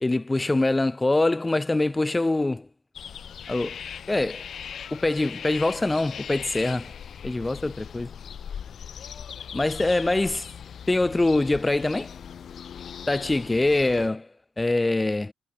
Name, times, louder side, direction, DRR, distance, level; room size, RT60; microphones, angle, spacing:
voice 1, 0.0-2.7 3.5-3.8 4.1-4.5 4.9-6.9 7.2-8.1 9.5-10.5 10.9-12.2 13.1-14.3 14.6-15.3, left 2 dB, 15° left, 0.7 m, -24 dB
sound 1, 2.9-14.1, left 8 dB, 55° left, 1.7 m, -39 dB
cardioid pair, 90°, 0 cm